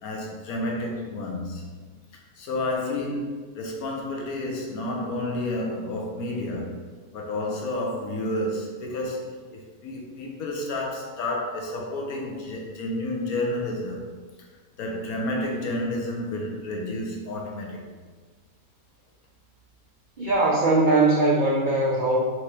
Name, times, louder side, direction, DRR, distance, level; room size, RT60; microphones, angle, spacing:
voice 1, 0.0-1.7 2.4-6.7 7.1-14.1 14.8-17.8, left 1 dB, 85° left, 0 dB, 1.2 m, -30 dB
voice 2, 20.2-22.3, right 2 dB, 75° right, -3 dB, 0.4 m, -20 dB
4.7 x 2.9 x 3.3 m, 1.4 s
omnidirectional pair, 1.5 m